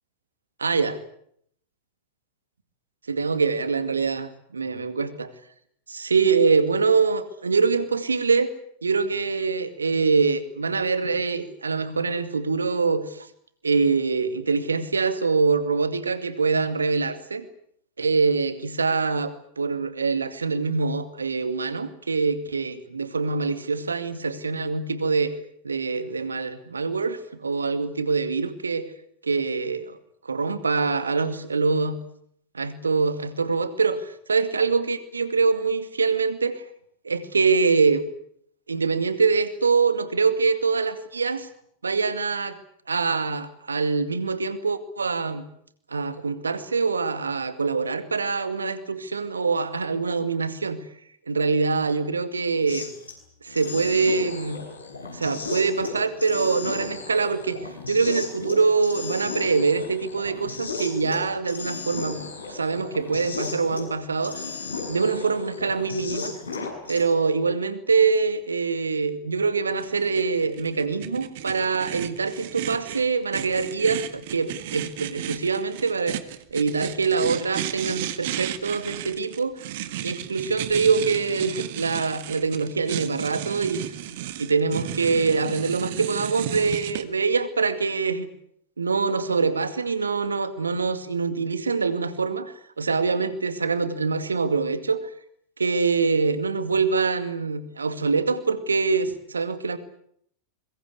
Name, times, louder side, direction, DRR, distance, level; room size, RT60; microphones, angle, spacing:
voice 1, 0.6-1.0 3.1-5.3 5.9-8.5 8.8-13.3 13.6-17.4 18.0-25.3 25.6-28.9 29.2-30.0 30.2-32.0 32.5-36.5 37.0-38.0 38.7-41.5 41.8-42.6 42.9-45.4 45.9-50.8 51.3-52.9 53.4-54.6 55.1-57.6 57.9-62.2 62.5-64.4 64.9-66.3 66.9-76.2 76.5-79.5 80.0-83.8 84.4-88.3 88.8-95.0 95.6-99.8, right 4 dB, 75° right, 12 dB, 2.2 m, -24 dB
sound 1, 52.7-53.1 53.5-63.9 64.2-67.0, left 4 dB, 75° left, 6.6 m, -35 dB
sound 2, 69.8-87.0, right 13 dB, 55° right, 1.8 m, -34 dB
24.5 x 23.0 x 8.3 m, 0.69 s
figure-of-eight pair, 90°, 0 cm